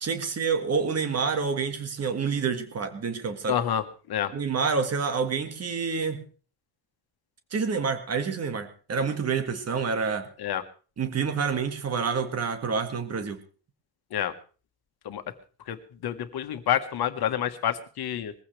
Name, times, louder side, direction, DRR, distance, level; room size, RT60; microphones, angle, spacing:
voice 1, 0.0-3.6 4.3-6.2 7.5-10.3 11.0-13.4, right 5 dB, 35° right, 8 dB, 2.0 m, -28 dB
voice 2, 3.5-4.3 10.4-10.6 14.1-14.3 15.0-15.2 15.7-18.3, left 10 dB, 60° left, 9 dB, 1.5 m, -28 dB
21.5 x 15.5 x 3.4 m, 0.38 s
cardioid pair, 165°, 41 cm